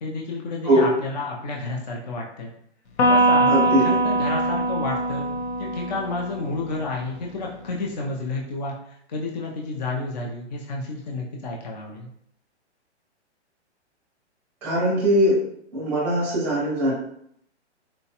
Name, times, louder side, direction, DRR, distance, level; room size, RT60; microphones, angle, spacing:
voice 1, 0.0-2.5 3.0-5.3 5.6-12.1, left 3 dB, 40° left, -1 dB, 0.4 m, -30 dB
Electric guitar, 3.0-6.5, right 2 dB, 75° left, 0.8 m, -22 dB
voice 2, 3.5-3.8 14.6-15.4 15.7-16.9, equal, 5° right, -6 dB, 0.6 m, -20 dB
4.0 x 2.2 x 2.7 m, 0.71 s
hypercardioid pair, 170°, 35 cm